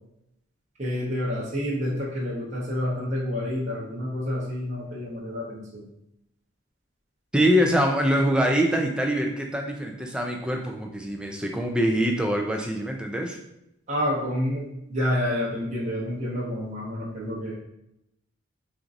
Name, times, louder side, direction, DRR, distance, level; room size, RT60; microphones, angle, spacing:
voice 1, 0.8-5.9 13.9-17.5, left 1 dB, 35° right, -6 dB, 0.8 m, -29 dB
voice 2, 7.3-13.4, equal, 5° right, 1 dB, 0.3 m, -24 dB
4.3 x 2.6 x 2.5 m, 0.81 s
head